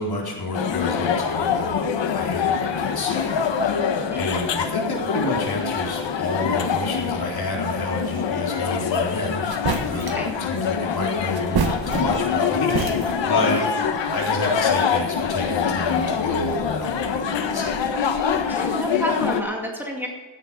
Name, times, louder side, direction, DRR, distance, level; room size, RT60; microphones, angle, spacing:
voice 1, 0.0-9.5 9.8-13.6 14.1-17.9, left 2 dB, 60° left, -2 dB, 4.1 m, -29 dB
sound 1, 0.5-19.4, left 7 dB, 85° left, 1.4 m, -24 dB
sound 2, 9.0-9.1 9.5-10.3 11.3-12.4 12.7-13.4, right 5 dB, 60° right, 1.6 m, -27 dB
voice 2, 10.0-10.3 13.2-13.6 18.5-20.1, equal, 5° right, -1 dB, 2.3 m, -30 dB
16.0 x 9.3 x 5.2 m, 1.3 s
wide cardioid pair, 140°, 43 cm